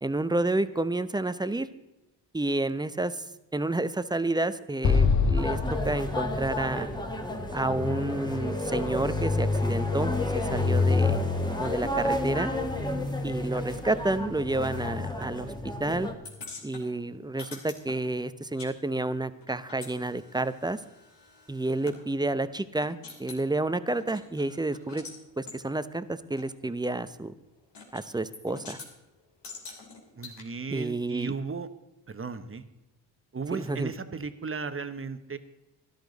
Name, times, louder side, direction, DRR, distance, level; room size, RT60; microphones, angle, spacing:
voice 1, 0.0-1.7 2.3-3.2 3.5-6.9 7.5-11.2 11.6-12.5 13.2-15.5 15.8-16.1 16.6-20.8 21.5-25.0 25.4-27.4 27.9-28.8 30.7-31.3 33.5-33.9, right 2 dB, 10° right, 14 dB, 0.6 m, -30 dB
Explosion, 4.8-8.1, left 4 dB, 40° left, 1.3 m, -26 dB
sound 1, 5.4-16.1, left 2 dB, 10° left, 1.6 m, -29 dB
sound 2, 16.2-18.7 19.0-22.0 22.4-22.5 22.8-23.4 23.9-25.2 25.5-25.6 26.4-26.5 27.7-28.0 28.3-28.9 29.4-30.4, left 4 dB, 65° left, 2.8 m, -45 dB
voice 2, 30.2-31.7 32.1-32.6 33.3-35.4, right 5 dB, 30° right, 10 dB, 1.0 m, -35 dB
13.0 x 11.5 x 4.0 m, 0.98 s
cardioid pair, 65°, 44 cm